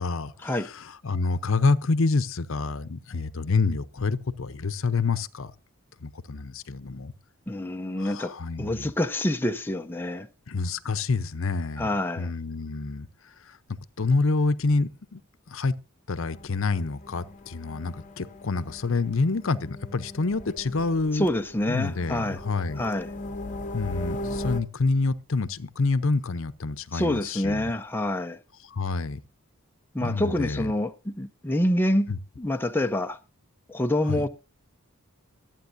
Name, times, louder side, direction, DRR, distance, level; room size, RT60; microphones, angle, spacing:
voice 1, 0.0-5.5 6.0-7.1 8.0-8.9 10.5-11.9 12.2-13.1 13.4-13.6 14.0-15.2 15.5-15.7 16.1-21.3 21.7-22.8 23.7-27.7 28.7-29.2 30.0-30.7 32.1-32.2 34.1-34.2, left 3 dB, 60° left, 0.7 m, -27 dB
voice 2, 7.5-10.3 11.8-12.3 21.1-22.4 22.8-23.1 26.9-28.4 29.9-32.1 32.4-33.2 33.7-34.3, left 1 dB, 10° left, 0.5 m, -27 dB
sound 1, 16.1-24.6, left 1 dB, 35° left, 0.9 m, -39 dB
24.0 x 9.1 x 2.6 m
head